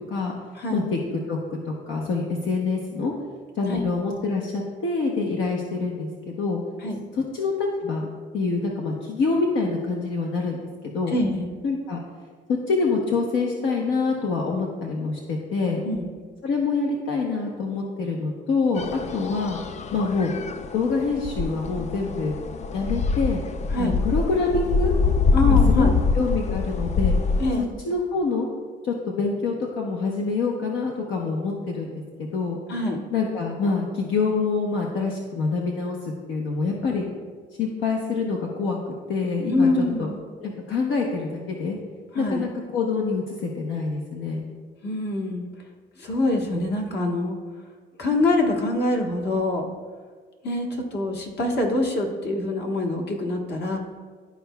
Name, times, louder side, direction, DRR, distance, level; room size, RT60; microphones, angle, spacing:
voice 1, 1.3-3.1 3.6-6.6 7.3-8.1 8.3-11.1 11.6-12.0 12.7-15.8 16.4-19.6 19.9-20.3 20.7-22.4 22.7-23.4 23.8-24.9 25.4-25.9 26.1-27.1 27.8-28.5 28.8-32.0 32.3-32.6 33.1-36.0 36.3-37.0 37.6-38.8 39.1-40.1 40.4-41.8 42.1-44.5, left 4 dB, 80° left, -1 dB, 0.9 m, -26 dB
voice 2, 11.1-11.5 15.8-16.1 23.7-24.0 25.3-26.0 27.4-27.7 32.7-33.0 39.5-40.2 42.1-42.5 44.8-45.4 46.0-47.4 48.0-49.6 50.4-53.8, left 2 dB, 55° left, 1 dB, 1.3 m, -24 dB
sound 1, 18.8-27.6, left 4 dB, 35° left, 0.4 m, -24 dB
12.0 x 4.6 x 2.3 m, 1.5 s
cardioid pair, 90°, 20 cm